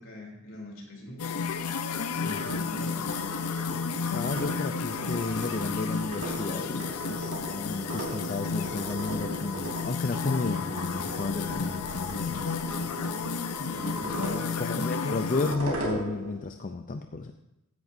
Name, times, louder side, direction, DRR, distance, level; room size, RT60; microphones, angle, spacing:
voice 1, 0.0-1.4 2.2-3.1 13.6-14.9 15.2-15.6, left 1 dB, 60° left, -1 dB, 3.2 m, -41 dB
sound 1, 1.2-15.6, left 5 dB, 90° left, 0.7 m, -32 dB
voice 2, 2.1-2.5 4.1-12.5 14.6-17.3, left 3 dB, 35° left, 6 dB, 0.5 m, -33 dB
sound 2, 2.3-16.4, right 1 dB, 85° right, 3.6 m, -39 dB
sound 3, 8.1-13.4, equal, 50° right, 1.3 m, -50 dB
15.5 x 10.5 x 2.7 m, 0.92 s
head